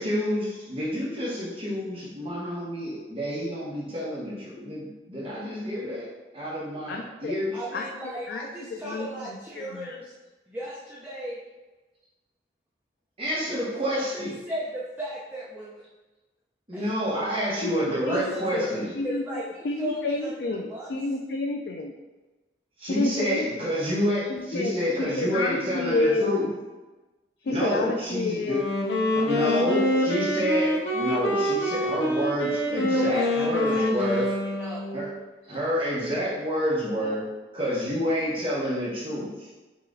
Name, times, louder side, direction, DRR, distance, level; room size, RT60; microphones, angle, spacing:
voice 1, 0.0-6.1 6.3-7.6 13.2-14.3 16.7-18.9 22.8-26.5 27.5-28.6 29.2-34.3 34.9-35.1 35.5-37.2 37.5-39.5, equal, 30° right, -8 dB, 1.0 m, -28 dB
voice 2, 6.9-7.3 7.7-7.9 8.3-10.0 17.6-17.8 18.1-18.7 18.9-21.9 22.8-23.7 24.3-26.4 27.4-30.1 36.8-37.2, left 2 dB, 65° left, 2 dB, 0.3 m, -30 dB
voice 3, 7.5-10.1 10.5-11.4 13.5-15.8 16.7-16.9 18.0-20.3 20.7-20.9 32.8-34.9, right 1 dB, 10° right, -7 dB, 0.4 m, -35 dB
Wind instrument woodwind instrument, 28.4-35.2, left 1 dB, 90° left, 0.7 m, -26 dB
5.5 x 3.0 x 2.5 m, 1.2 s
head